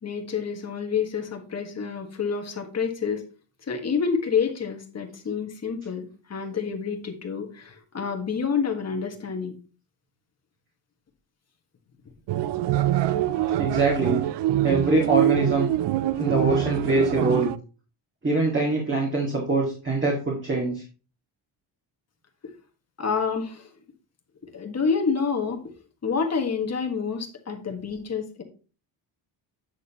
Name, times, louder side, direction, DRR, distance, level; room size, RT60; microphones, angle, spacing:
voice 1, 0.0-3.2 3.7-9.5 12.8-12.9 23.0-23.7 24.5-25.6 26.0-28.4, left 6 dB, 35° left, 3 dB, 1.4 m, -28 dB
sound 1, 12.3-17.6, right 13 dB, 65° right, 0.5 m, -24 dB
voice 2, 13.6-14.2 14.6-15.7 16.2-17.5 18.2-20.8, right 3 dB, 25° right, -2 dB, 1.9 m, -23 dB
8.6 x 6.3 x 2.9 m, 0.36 s
wide cardioid pair, 145°, 47 cm